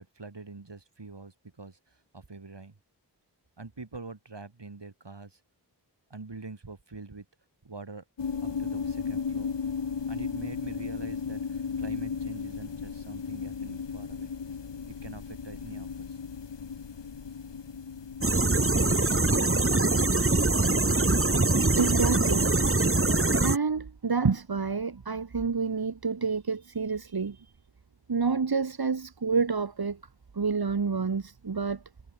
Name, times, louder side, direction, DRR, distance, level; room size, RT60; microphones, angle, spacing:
voice 1, 0.0-2.8 3.6-5.4 6.1-7.3 7.6-8.0 8.4-9.6 10.1-14.3 14.9-16.2, right 3 dB, 75° right, 7.0 m, -44 dB
sound 1, 8.2-21.6, left 6 dB, 85° left, 1.3 m, -36 dB
sound 2, 18.2-23.6, right 2 dB, 30° right, 1.9 m, -23 dB
voice 2, 21.8-22.5 23.4-27.5 28.1-30.0 30.3-31.8, right 5 dB, 60° right, 1.4 m, -28 dB
wide cardioid pair, 40°, 42 cm